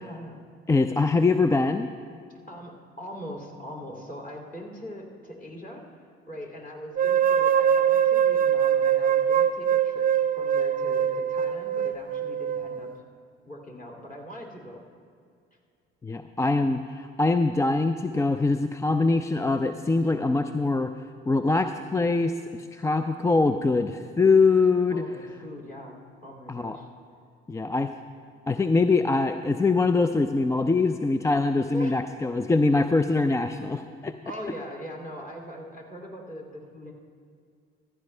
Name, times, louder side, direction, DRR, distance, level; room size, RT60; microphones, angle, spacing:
voice 1, 0.0-0.5 2.5-5.9 6.3-12.9 13.5-14.8 24.9-26.9 31.7-32.0 34.2-36.9, equal, 30° left, 0 dB, 2.6 m, -41 dB
voice 2, 0.7-1.9 16.0-20.9 21.3-22.4 22.7-25.0 26.5-26.8 27.5-27.9 28.5-34.1, left 3 dB, 10° left, 9 dB, 0.3 m, -23 dB
sound 1, 7.0-13.0, right 9 dB, 30° right, 0.7 m, -23 dB
14.5 x 11.0 x 3.3 m, 2.3 s
hypercardioid pair, 55°, 30 cm